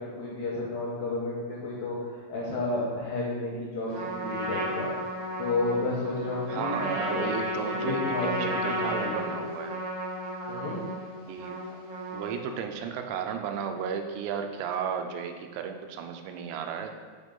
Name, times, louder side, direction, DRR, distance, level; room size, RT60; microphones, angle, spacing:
voice 1, 0.0-4.9 5.4-9.2 10.5-10.8, left 2 dB, 70° left, -4 dB, 2.4 m, -32 dB
Trumpet, 3.9-12.6, equal, 65° right, 2.6 m, -33 dB
voice 2, 6.5-9.8 11.3-11.6 12.1-17.0, right 7 dB, 90° right, 6 dB, 2.9 m, -34 dB
6.1 x 5.5 x 5.3 m, 1.5 s
omnidirectional pair, 4.9 m